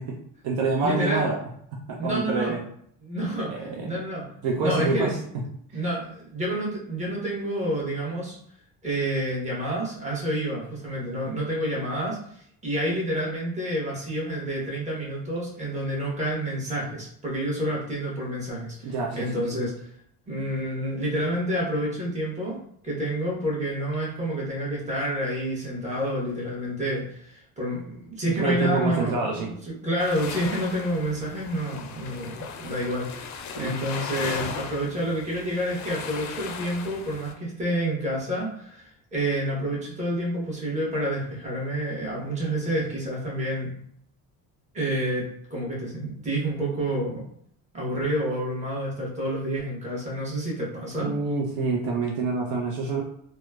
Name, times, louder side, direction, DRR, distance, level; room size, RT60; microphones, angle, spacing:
voice 1, 0.0-1.4 1.7-2.6 3.5-4.0 4.4-5.4 18.8-19.4 28.2-29.5 33.6-33.8 51.0-53.0, right 3 dB, 65° right, 0 dB, 0.6 m, -27 dB
voice 2, 0.8-1.3 2.0-2.5 3.0-4.2 4.6-5.1 5.7-8.4 8.8-19.9 20.3-22.6 22.8-43.7 44.7-47.2 47.7-51.1, right 1 dB, 20° right, -5 dB, 1.1 m, -29 dB
sound 1, 30.0-37.3, left 5 dB, 50° left, 0.4 m, -37 dB
2.9 x 2.1 x 2.3 m, 0.66 s
cardioid pair, 105°, 38 cm